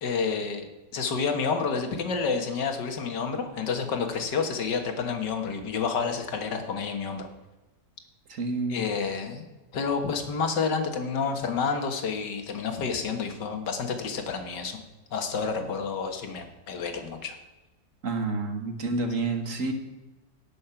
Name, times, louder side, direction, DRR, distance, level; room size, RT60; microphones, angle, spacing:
voice 1, 0.0-7.3 8.7-14.8 15.1-17.4, left 5 dB, 85° left, 6 dB, 2.1 m, -29 dB
voice 2, 8.3-8.8 18.0-19.7, right 3 dB, 50° right, 5 dB, 1.8 m, -29 dB
18.0 x 6.5 x 5.8 m, 1.1 s
omnidirectional pair, 1.8 m